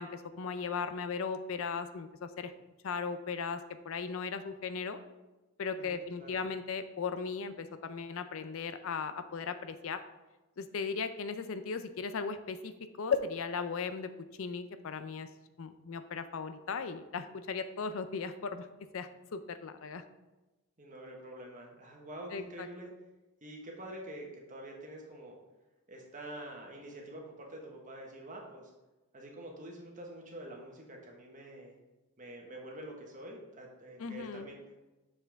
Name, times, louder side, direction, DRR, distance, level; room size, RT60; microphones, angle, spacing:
voice 1, 0.0-2.5 2.8-5.0 5.6-10.0 10.6-12.7 13.0-14.1 14.4-15.3 15.6-18.7 18.9-20.0 22.3-22.7 34.0-34.5, left 5 dB, 65° left, 10 dB, 0.4 m, -37 dB
voice 2, 5.8-6.4 20.8-22.9 23.4-25.4 25.9-28.7 29.1-31.7 32.2-34.6, right 1 dB, 35° right, 0 dB, 1.3 m, -46 dB
6.8 x 5.6 x 3.5 m, 1.1 s
head